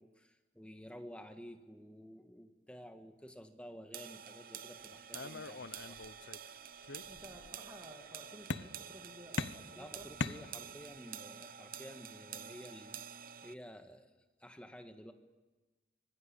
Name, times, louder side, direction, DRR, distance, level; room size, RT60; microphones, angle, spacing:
voice 1, 0.0-6.0 9.8-13.0 13.4-14.1 14.4-15.1, equal, 5° left, 6 dB, 1.5 m, -52 dB
sound 1, 3.9-13.5, right 8 dB, 50° right, 0.9 m, -49 dB
sound 2, 4.5-5.9 6.9-7.8 9.7-11.0 11.7-12.8, equal, 55° left, 6.8 m, -69 dB
sound 3, 5.1-6.5 6.8-7.6 8.5-9.0 9.4-11.0, left 3 dB, 75° left, 0.8 m, -41 dB
voice 2, 7.1-10.1, equal, 20° right, 0 dB, 2.4 m, -54 dB
26.0 x 23.5 x 8.4 m, 1.2 s
head